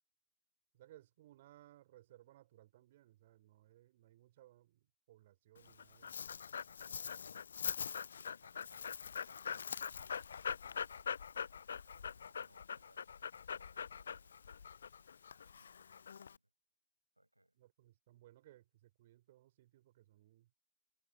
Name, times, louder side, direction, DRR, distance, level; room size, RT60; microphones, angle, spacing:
voice 1, 0.7-6.1 17.5-20.5, right 14 dB, 55° right, 4.9 m, -63 dB
Dog, 5.6-16.4, left 7 dB, 70° left, 0.4 m, -43 dB
voice 2, 6.8-7.5 8.2-11.1 11.7-14.8 15.3-16.5 17.2-17.6, right 1 dB, 85° right, 5.5 m, -70 dB
figure-of-eight pair, 90°, 0 cm